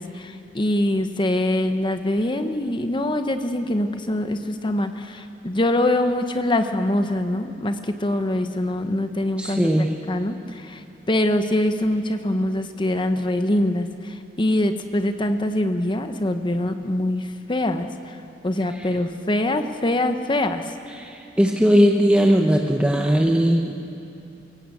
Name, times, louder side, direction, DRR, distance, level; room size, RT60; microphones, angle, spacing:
voice 1, 0.0-9.7 10.1-18.2 18.4-20.7, left 1 dB, 30° left, 8 dB, 0.9 m, -24 dB
voice 2, 9.4-9.9 18.7-18.9 20.9-23.7, equal, 5° right, 1 dB, 1.0 m, -19 dB
23.0 x 17.0 x 8.4 m, 2.7 s
head